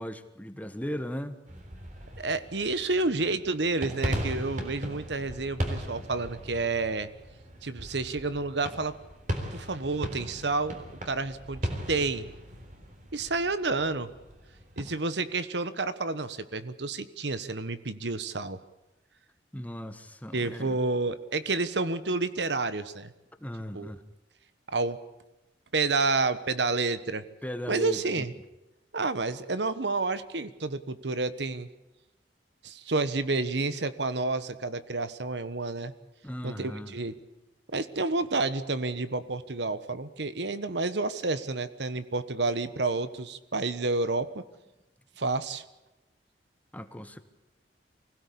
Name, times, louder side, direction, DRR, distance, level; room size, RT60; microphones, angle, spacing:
voice 1, 0.0-1.4 19.5-20.8 23.4-24.0 27.4-28.2 36.2-36.9 46.7-47.2, equal, 10° left, 10 dB, 1.3 m, -37 dB
sound 1, 1.5-14.8, equal, 45° right, 3.7 m, -38 dB
voice 2, 2.2-7.1 7.6-8.9 9.5-10.8 11.0-12.3 13.1-14.1 14.8-18.6 20.3-23.1 23.7-23.9 24.7-25.0 25.7-27.2 27.7-28.3 28.9-31.7 32.6-35.9 36.4-37.1 37.7-44.4 45.2-45.6, right 3 dB, 70° right, 13 dB, 1.2 m, -30 dB
24.0 x 17.0 x 8.5 m, 0.99 s
head